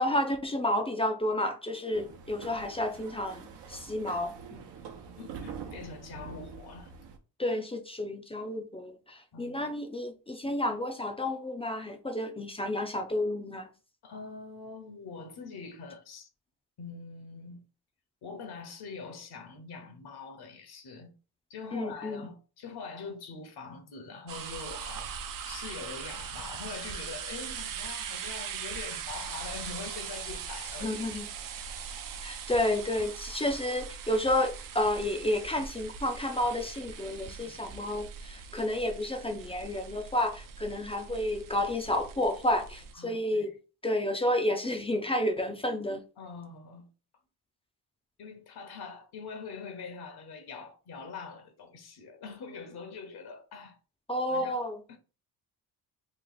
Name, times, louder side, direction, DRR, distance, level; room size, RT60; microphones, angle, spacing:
voice 1, 0.0-4.7 7.4-13.7 21.7-22.2 30.8-31.3 32.2-43.5 43.8-46.0 54.1-54.8, left 1 dB, 15° left, 0.4 m, -31 dB
sound 1, 1.9-7.2, right 6 dB, 75° right, 0.8 m, -45 dB
voice 2, 5.1-6.9 9.3-9.7 14.0-16.3 16.8-17.6 18.2-21.1 21.5-31.2 33.0-33.1 37.2-37.6 42.9-43.5 46.2-46.9 48.2-53.8 54.3-54.6 54.9-55.0, left 4 dB, 65° left, 1.0 m, -44 dB
sound 2, 24.3-42.9, right 7 dB, 50° right, 0.6 m, -41 dB
3.2 x 2.3 x 3.9 m
cardioid pair, 100°, 42 cm